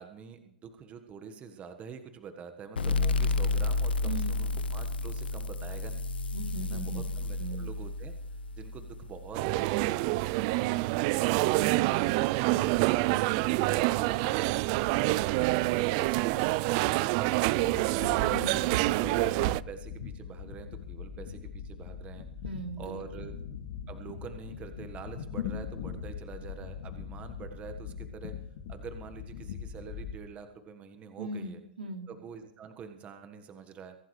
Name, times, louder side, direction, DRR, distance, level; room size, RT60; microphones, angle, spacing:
voice 1, 0.0-6.1 6.6-8.1 8.6-12.1 14.0-17.8 18.2-22.3 22.8-23.3 23.9-28.3 28.7-31.6 32.1-34.0, right 6 dB, 25° right, 7 dB, 1.5 m, -46 dB
sound 1, 2.8-10.0, left 3 dB, 90° left, 0.9 m, -31 dB
voice 2, 4.0-4.4 6.3-7.1 7.4-7.7 18.2-18.7 22.4-23.3 31.2-32.1, right 2 dB, 85° right, 3 dB, 3.2 m, -38 dB
sound 2, 9.3-19.6, right 19 dB, 45° right, 0.4 m, -27 dB
sound 3, 17.5-30.2, left 7 dB, 60° left, 2.2 m, -41 dB
23.5 x 11.5 x 3.3 m, 0.77 s
hypercardioid pair, 125°, 5 cm